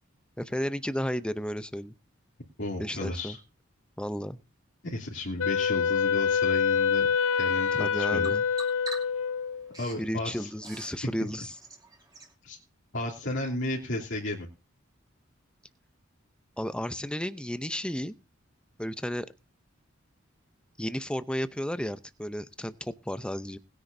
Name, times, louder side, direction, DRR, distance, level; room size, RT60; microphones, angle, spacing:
voice 1, 0.4-1.9 2.8-3.4 4.0-4.4 7.8-8.4 10.0-11.5 16.6-18.1 18.8-19.3 20.8-23.6, equal, 5° left, 12 dB, 0.6 m, -33 dB
voice 2, 2.6-3.4 4.8-7.1 7.4-8.3 9.8-10.5 12.4-12.6 12.9-14.5, left 1 dB, 60° left, -3 dB, 2.8 m, -33 dB
Wind instrument woodwind instrument, 5.4-9.7, left 6 dB, 80° left, 0.8 m, -26 dB
Bird vocalization bird call bird song, 6.7-12.3, right 3 dB, 20° right, 2.6 m, -48 dB
20.0 x 9.9 x 2.7 m, 0.31 s
head